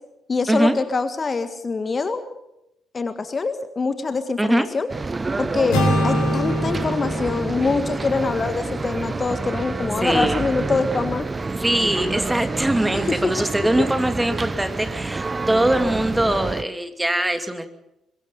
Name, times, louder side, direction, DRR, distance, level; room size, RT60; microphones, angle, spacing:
voice 1, 0.3-2.4 2.9-4.9 5.4-11.3 13.1-13.2 13.8-13.9, left 4 dB, 35° left, 10 dB, 1.7 m, -24 dB
sound 1, 4.9-16.6, right 3 dB, 25° right, 0.8 m, -28 dB
sound 2, 5.7-9.7, equal, 65° left, 4.6 m, -26 dB
voice 2, 10.0-10.4 11.6-17.7, right 1 dB, 10° right, 8 dB, 2.6 m, -22 dB
23.0 x 21.5 x 5.6 m, 0.84 s
figure-of-eight pair, 40°, 0 cm